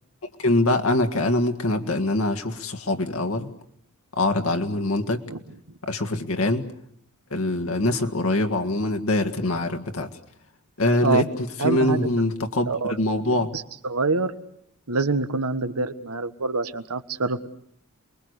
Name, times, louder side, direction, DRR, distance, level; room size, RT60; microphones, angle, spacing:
voice 1, 0.4-3.5 4.1-5.2 5.8-6.7 7.3-10.1 10.8-13.5, left 1 dB, 65° left, 4 dB, 1.9 m, -24 dB
voice 2, 11.6-12.0 12.7-12.9 13.5-14.3 14.9-17.5, right 3 dB, 85° right, 10 dB, 1.5 m, -25 dB
29.0 x 22.0 x 8.1 m, 0.73 s
head